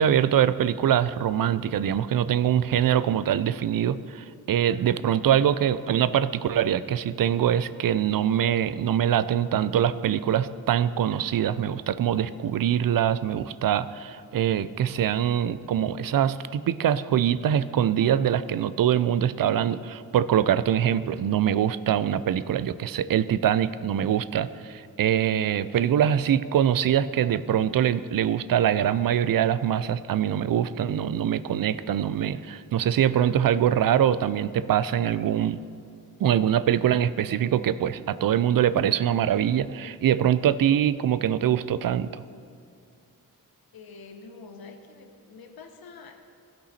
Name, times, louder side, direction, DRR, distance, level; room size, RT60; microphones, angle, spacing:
voice 1, 0.0-35.6 36.2-42.2, right 10 dB, 65° right, 15 dB, 0.5 m, -23 dB
voice 2, 43.7-46.3, left 4 dB, 80° left, 5 dB, 0.9 m, -46 dB
16.0 x 5.5 x 4.2 m, 2.4 s
cardioid pair, 40°, 36 cm